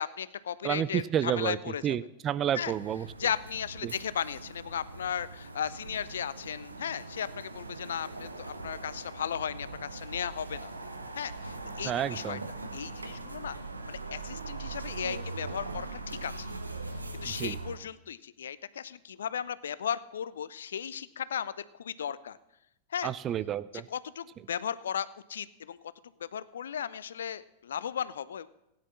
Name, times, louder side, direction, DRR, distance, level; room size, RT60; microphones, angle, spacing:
voice 1, 0.0-2.0 2.5-2.7 3.2-10.7 11.2-12.4 12.7-13.6 13.9-16.5 16.9-22.4 22.9-23.1 23.7-25.8 26.2-28.5, left 8 dB, 65° left, 18 dB, 0.4 m, -36 dB
voice 2, 0.6-3.1 3.8-3.9 11.8-12.4 17.4-17.6 23.0-23.9, right 10 dB, 30° right, 17 dB, 0.4 m, -30 dB
sound 1, 2.5-17.8, right 3 dB, 80° right, 1.0 m, -41 dB
16.5 x 9.6 x 4.2 m, 0.88 s
figure-of-eight pair, 90°, 0 cm